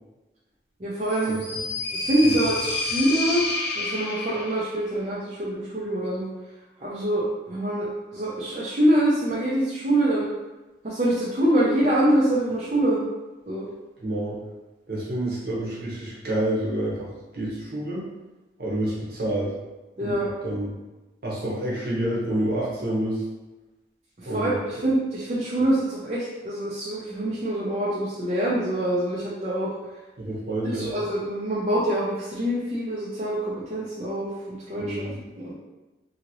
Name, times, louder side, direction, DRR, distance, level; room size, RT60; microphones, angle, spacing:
voice 1, 0.8-1.4 1.9-3.5 3.7-6.3 6.8-10.3 10.8-13.0 13.5-13.7 20.0-20.3 24.2-29.8 30.2-30.3 30.6-35.1 35.4-35.5, right 1 dB, 40° right, -9 dB, 0.5 m, -25 dB
sound 1, 1.0-4.8, left 3 dB, 65° left, 0.7 m, -29 dB
voice 2, 14.0-14.4 14.9-18.1 18.6-19.5 20.0-20.2 20.4-20.7 21.2-23.2 24.2-24.6 30.2-31.0 34.8-35.2, right 1 dB, 60° right, -5 dB, 0.9 m, -28 dB
2.8 x 2.6 x 2.9 m, 1.1 s
head